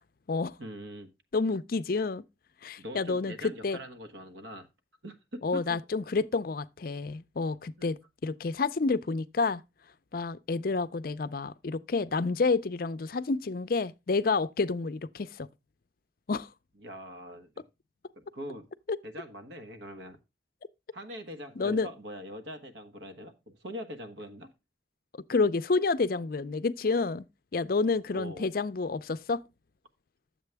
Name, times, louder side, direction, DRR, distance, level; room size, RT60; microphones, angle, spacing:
voice 1, 0.6-1.1 2.8-4.7 5.0-5.8 7.8-7.9 16.8-17.5 18.1-18.7 19.0-20.2 20.9-24.5 28.1-28.5, equal, 80° right, 1.3 m, -42 dB
voice 2, 1.3-2.2 2.6-3.8 5.4-9.6 10.1-15.5 16.3-16.5 21.6-21.9 25.3-27.2 27.5-29.4, left 4 dB, 50° left, 0.5 m, -29 dB
10.5 x 7.4 x 3.4 m
head